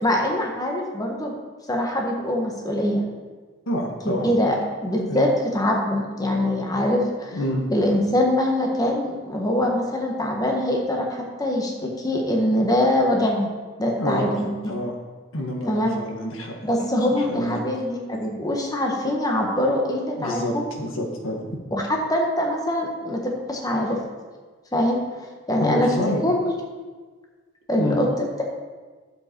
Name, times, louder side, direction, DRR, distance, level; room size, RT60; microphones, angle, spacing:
voice 1, 0.0-1.3 1.7-3.0 4.0-4.5 4.8-7.4 7.7-13.5 13.8-14.5 15.6-16.0 16.6-20.7 21.7-24.0 24.7-25.0 25.5-25.9 26.2-26.5 27.7-28.4, left 1 dB, 20° left, 0 dB, 1.4 m, -23 dB
voice 2, 3.7-4.3 5.1-5.3 7.3-7.6 14.0-14.9 15.3-16.6 17.3-17.6 20.2-21.5 25.6-26.2 27.8-28.0, equal, 75° left, 1 dB, 1.6 m, -27 dB
12.0 x 7.7 x 4.5 m, 1.4 s
head